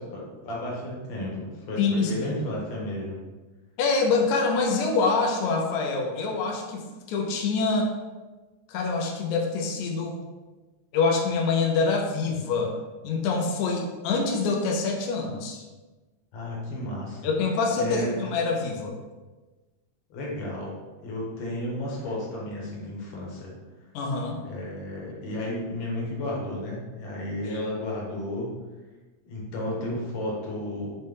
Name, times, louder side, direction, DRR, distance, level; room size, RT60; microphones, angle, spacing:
voice 1, 0.1-3.2 16.3-17.3 17.8-18.2 20.1-20.8 21.0-23.5 24.4-28.5 29.2-30.9, left 1 dB, 60° left, -4 dB, 1.6 m, -33 dB
voice 2, 1.8-2.1 3.8-7.9 8.7-10.2 10.9-12.8 13.0-15.6 17.2-19.0 23.9-24.4 27.4-27.6, left 4 dB, 85° left, 1 dB, 2.0 m, -25 dB
5.5 x 2.1 x 3.3 m, 1.2 s
omnidirectional pair, 3.4 m